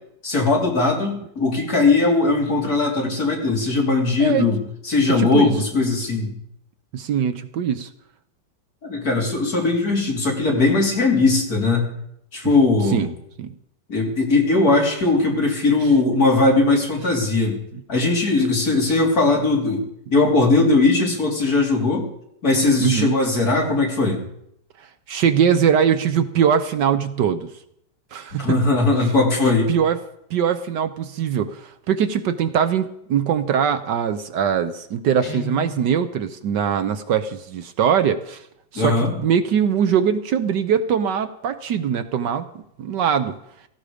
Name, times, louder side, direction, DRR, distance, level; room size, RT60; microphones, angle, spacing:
voice 1, 0.2-4.6 4.8-6.3 8.8-11.9 12.3-13.1 13.9-17.6 17.9-22.1 22.4-24.2 28.4-29.7 38.8-39.1, left 3 dB, 50° left, -1 dB, 3.9 m, -19 dB
voice 2, 5.2-5.5 6.9-7.9 12.9-13.1 13.4-13.5 17.7-17.8 22.8-23.2 25.1-27.5 28.1-28.6 29.7-30.0 30.3-38.4 38.7-42.5 42.8-43.3, right 8 dB, 70° right, 11 dB, 1.4 m, -21 dB
Guitar, 35.2-36.0, left 4 dB, 15° left, 1.6 m, -34 dB
17.0 x 14.5 x 5.0 m, 0.75 s
omnidirectional pair, 2.1 m